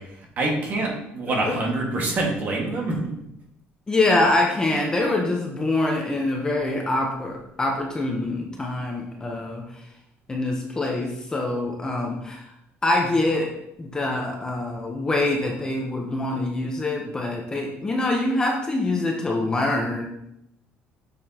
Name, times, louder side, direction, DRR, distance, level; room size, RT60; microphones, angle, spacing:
voice 1, 0.4-3.0, right 2 dB, 40° right, -1 dB, 1.7 m, -25 dB
voice 2, 3.9-9.6 10.3-12.5 12.8-13.5 13.8-20.1, left 2 dB, 15° left, 0 dB, 0.9 m, -24 dB
6.7 x 6.0 x 2.9 m, 0.80 s
cardioid pair, 145°, 5 cm